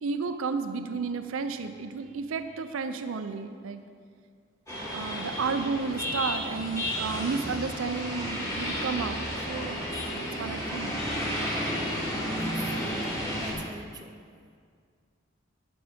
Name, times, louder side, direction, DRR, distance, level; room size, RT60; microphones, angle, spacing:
voice 1, 0.0-3.8 4.9-10.9, right 4 dB, 90° right, 9 dB, 0.5 m, -32 dB
sound 1, 4.7-13.5, equal, 15° left, 1.9 m, -32 dB
voice 2, 12.4-14.2, right 3 dB, 20° right, 5 dB, 0.5 m, -45 dB
11.5 x 6.1 x 5.0 m, 2.2 s
head